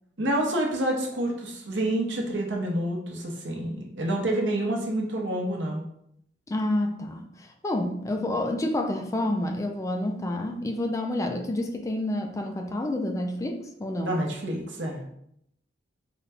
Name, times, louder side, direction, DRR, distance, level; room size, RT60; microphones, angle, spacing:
voice 1, 0.2-5.8 8.1-8.2 14.0-15.0, right 1 dB, 75° right, 0 dB, 0.8 m, -28 dB
voice 2, 6.5-14.2, left 1 dB, 15° left, 4 dB, 0.3 m, -29 dB
3.9 x 2.2 x 3.4 m, 0.73 s
head